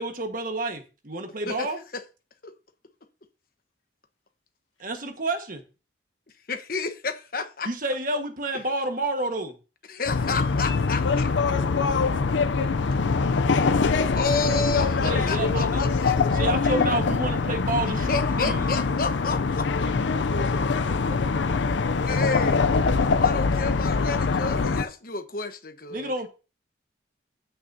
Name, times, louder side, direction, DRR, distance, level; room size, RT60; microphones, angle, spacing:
voice 1, 0.0-1.8 4.8-5.6 7.6-9.5 15.0-15.9 16.3-18.6 25.9-26.3, right 2 dB, 45° right, 1.5 m, -29 dB
voice 2, 6.5-7.7 8.5-8.6 9.9-11.3 13.5-16.2 18.1-20.1 22.0-26.1, left 3 dB, 50° left, 1.1 m, -31 dB
sound 1, 10.1-24.8, left 4 dB, 70° left, 0.5 m, -23 dB
voice 3, 20.1-21.3, left 2 dB, 90° left, 2.0 m, -36 dB
15.0 x 6.2 x 2.7 m
head